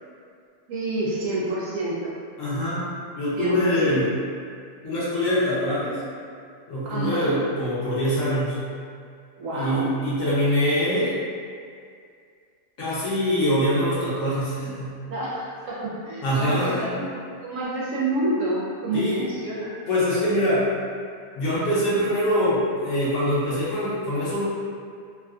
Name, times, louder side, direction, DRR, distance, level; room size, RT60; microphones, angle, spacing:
voice 1, 0.7-2.1 3.4-4.0 6.9-7.4 9.4-9.9 15.1-19.7, right 1 dB, 70° right, -6 dB, 0.8 m, -28 dB
voice 2, 2.4-2.8 3.2-4.0 4.8-6.0 6.7-8.6 9.5-11.2 12.8-15.0 16.2-16.9 18.9-19.2 19.9-20.7 21.3-24.4, equal, 55° left, -9 dB, 1.1 m, -24 dB
3.6 x 2.2 x 2.4 m, 2.2 s
omnidirectional pair, 1.8 m